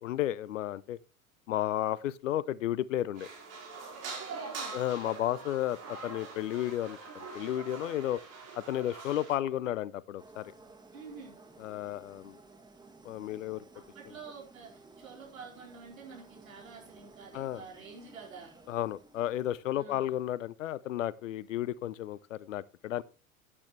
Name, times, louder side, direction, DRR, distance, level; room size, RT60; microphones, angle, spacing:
voice 1, 0.0-1.0 1.5-3.3 4.7-8.2 8.6-10.5 11.6-12.4 13.0-13.6 17.3-17.6 18.7-23.0, left 12 dB, 65° left, 0.6 m, -33 dB
sound 1, 3.1-9.3, right 4 dB, 35° right, 4.7 m, -43 dB
voice 2, 4.3-4.8 5.2-5.6 10.9-11.4 13.9-18.6 19.7-20.1, right 5 dB, 75° right, 4.4 m, -49 dB
sound 2, 10.2-20.0, right 3 dB, 10° right, 1.7 m, -56 dB
13.0 x 8.9 x 3.2 m
figure-of-eight pair, 75°, 41 cm